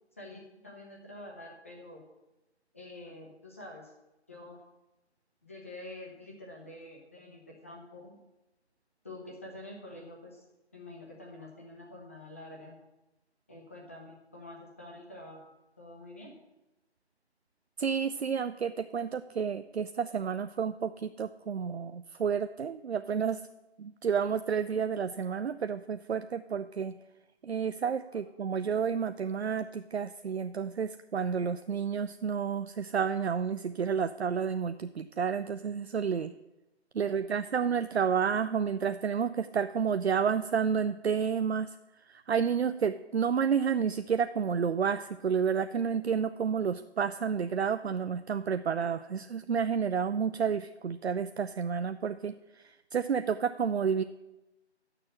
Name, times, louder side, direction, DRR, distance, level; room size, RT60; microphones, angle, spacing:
voice 1, 0.2-2.0 2.7-3.9 4.3-4.6 5.4-8.2 9.0-10.5 10.7-12.8 13.5-15.5 15.8-16.3 37.0-37.4, left 1 dB, 10° left, -1 dB, 0.8 m, -47 dB
voice 2, 17.8-23.4 23.8-27.0 27.4-36.3 36.9-41.7 42.1-54.0, right 7 dB, 70° right, 10 dB, 0.6 m, -30 dB
10.0 x 6.8 x 7.5 m, 0.98 s
figure-of-eight pair, 165°, 34 cm